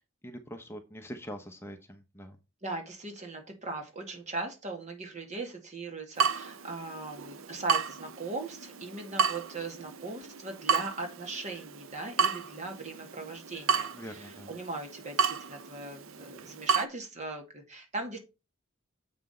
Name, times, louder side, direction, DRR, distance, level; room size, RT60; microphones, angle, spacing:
voice 1, 0.2-2.4 13.9-14.5, equal, 10° left, 5 dB, 0.8 m, -43 dB
voice 2, 2.6-18.2, right 3 dB, 35° right, 3 dB, 2.2 m, -39 dB
Water tap faucet / Drip, 6.2-16.9, right 5 dB, 85° right, 0.7 m, -32 dB
7.7 x 5.9 x 4.3 m, 0.28 s
head